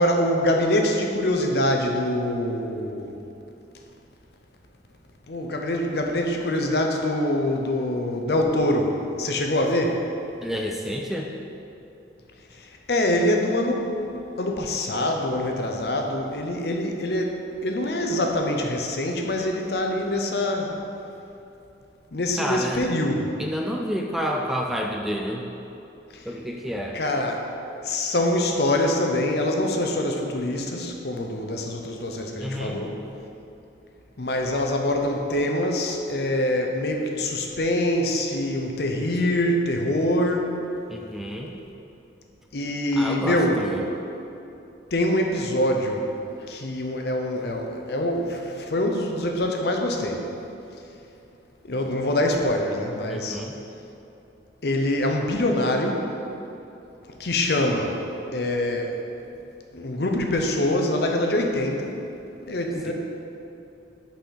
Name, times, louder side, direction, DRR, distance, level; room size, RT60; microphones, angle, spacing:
voice 1, 0.0-3.2 5.3-10.0 12.5-13.9 14.4-17.3 17.6-20.7 22.1-23.3 26.1-26.3 26.9-27.4 27.8-32.9 34.2-40.5 42.5-43.6 44.9-46.0 46.5-50.2 51.6-53.4 54.6-56.0 57.2-58.0 58.3-58.9 59.7-61.9 62.5-62.9, left 1 dB, 60° left, 2 dB, 0.7 m, -24 dB
voice 2, 10.4-11.3 22.4-22.8 23.4-25.5 26.3-27.0 32.4-32.8 40.9-41.6 43.0-43.8 53.1-53.5 62.9-63.0, equal, ahead, 0 dB, 0.3 m, -29 dB
5.7 x 4.3 x 5.7 m, 2.8 s
head